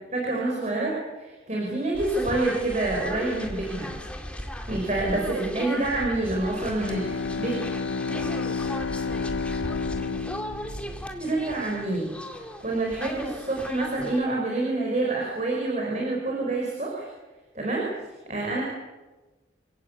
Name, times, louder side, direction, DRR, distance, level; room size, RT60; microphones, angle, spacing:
voice 1, 0.1-3.9 4.7-7.5 11.2-17.1 17.5-17.9 18.3-18.6, right 2 dB, 40° right, -2 dB, 5.6 m, -27 dB
sound 1, 1.9-14.2, equal, 5° left, 2.2 m, -37 dB
Bowed string instrument, 6.8-11.8, left 4 dB, 85° left, 0.7 m, -31 dB
28.5 x 17.0 x 8.4 m, 1.2 s
head